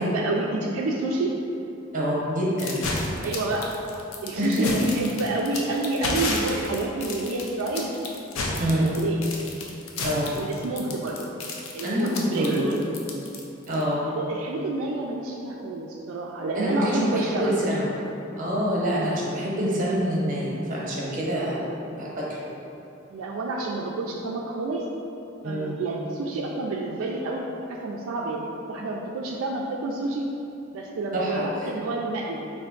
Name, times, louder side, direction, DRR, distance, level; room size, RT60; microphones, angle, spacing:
voice 1, 0.0-1.3 3.2-3.7 4.2-7.9 8.7-9.4 10.3-11.2 11.7-12.9 14.0-17.5 23.1-24.8 25.4-30.3 30.7-32.5, right 2 dB, 80° right, -1 dB, 0.3 m, -29 dB
voice 2, 1.9-3.0 4.3-4.8 8.6-8.9 10.0-10.3 11.8-12.6 13.7-14.0 16.6-17.9 18.4-22.5 25.4-25.7 31.1-31.4, equal, 40° right, -5 dB, 0.8 m, -26 dB
sound 1, 2.6-13.8, left 3 dB, 75° left, 0.5 m, -32 dB
3.4 x 2.6 x 3.8 m, 2.8 s
head